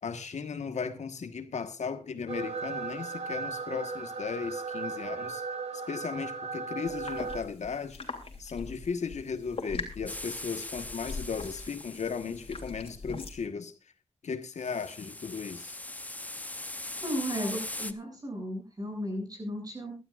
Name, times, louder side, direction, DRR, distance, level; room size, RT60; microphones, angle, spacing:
voice 1, 0.0-5.4 5.7-8.0 8.4-13.7 14.2-15.8, left 5 dB, 80° left, 1.4 m, -36 dB
sound 1, 2.3-7.4, right 4 dB, 70° right, 2.2 m, -36 dB
sound 2, 6.9-13.4, left 4 dB, 55° left, 3.1 m, -42 dB
sound 3, 10.1-12.6 14.6-17.9, left 1 dB, 15° left, 0.7 m, -40 dB
voice 2, 17.0-20.0, equal, 35° right, 7.8 m, -35 dB
23.0 x 12.0 x 2.5 m
wide cardioid pair, 135°, 12 cm